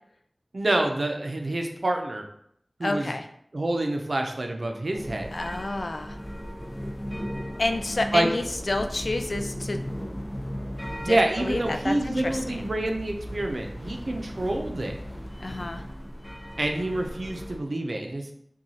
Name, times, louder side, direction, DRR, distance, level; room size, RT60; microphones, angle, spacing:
voice 1, 0.5-2.3 2.8-3.2 3.5-5.3 8.1-8.3 11.0-14.9 16.6-18.3, right 1 dB, 75° right, 3 dB, 0.5 m, -27 dB
voice 2, 2.8-3.2 5.3-6.2 7.6-9.8 11.0-12.7 15.4-15.8, left 2 dB, 80° left, 6 dB, 0.4 m, -29 dB
sound 1, 4.9-17.6, equal, 10° left, 0.7 m, -36 dB
5.7 x 2.3 x 2.8 m, 0.69 s
wide cardioid pair, 45°, 0 cm